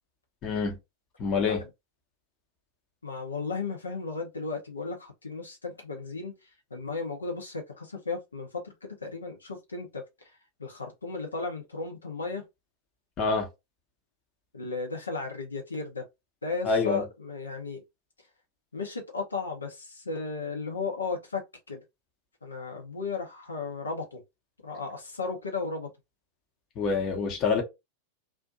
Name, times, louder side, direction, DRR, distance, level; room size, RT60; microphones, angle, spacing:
voice 1, 0.4-0.8 1.2-1.6 13.2-13.5 16.6-17.0 26.8-27.6, left 4 dB, 35° left, 0.8 m, -26 dB
voice 2, 1.4-1.7 3.0-12.4 14.5-16.0 16.4-17.8 18.7-21.4 21.7-21.8 22.4-24.2 24.6-25.9, left 4 dB, 75° left, 0.6 m, -35 dB
2.5 x 2.1 x 2.6 m
figure-of-eight pair, 90°, 0 cm